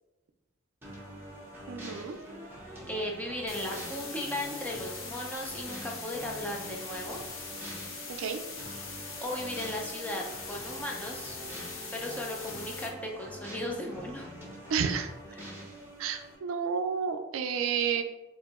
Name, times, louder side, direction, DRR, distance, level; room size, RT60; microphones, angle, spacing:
sound 1, 0.8-16.4, right 1 dB, 10° right, 0.8 m, -45 dB
voice 1, 1.7-2.2 8.2-8.4 14.7-15.1 16.0-18.0, right 6 dB, 70° right, 7 dB, 0.3 m, -30 dB
voice 2, 2.9-7.2 9.2-11.4 11.9-14.3 15.3-15.4, left 1 dB, 5° left, -1 dB, 0.4 m, -36 dB
sound 2, 3.5-12.9, left 4 dB, 65° left, 0.7 m, -42 dB
4.6 x 2.6 x 2.4 m, 1.0 s
head